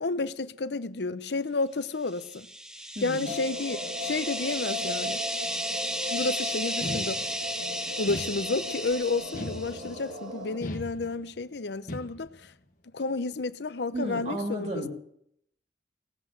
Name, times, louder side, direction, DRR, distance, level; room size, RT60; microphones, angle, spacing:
voice 1, 0.0-2.5 3.0-5.2 6.1-7.2 8.0-12.5 12.9-14.7, left 3 dB, 75° left, 0.7 m, -31 dB
sound 1, 2.1-9.9, equal, 5° right, 0.8 m, -34 dB
voice 2, 2.9-3.4 13.9-14.9, right 1 dB, 40° right, 2.5 m, -33 dB
sound 2, 3.2-10.6, left 1 dB, 85° right, 2.4 m, -38 dB
sound 3, 6.8-7.6 8.1-8.8 9.3-10.1 10.6-11.4 11.9-12.5, left 1 dB, 50° left, 1.4 m, -38 dB
18.5 x 8.0 x 7.9 m
head